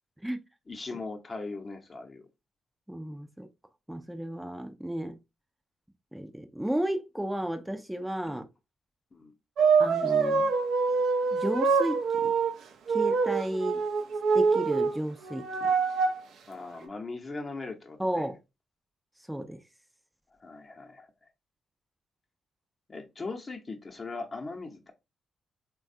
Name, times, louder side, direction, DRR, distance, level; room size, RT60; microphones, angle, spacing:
voice 1, 0.7-2.3 8.3-8.4 9.1-9.3 16.5-18.3 20.4-21.1 22.9-24.9, left 3 dB, 40° left, 0.8 m, -39 dB
voice 2, 2.9-3.5 3.9-5.2 6.1-8.4 9.8-10.5 11.3-12.3 12.9-13.8 14.3-15.7 18.0-18.4 19.3-19.6, right 1 dB, 5° right, 0.5 m, -33 dB
sound 1, 9.6-12.5 12.9-15.0 15.2-16.2 16.8-16.9, right 5 dB, 75° right, 0.5 m, -25 dB
3.2 x 2.3 x 2.6 m
supercardioid pair, 50°, 0 cm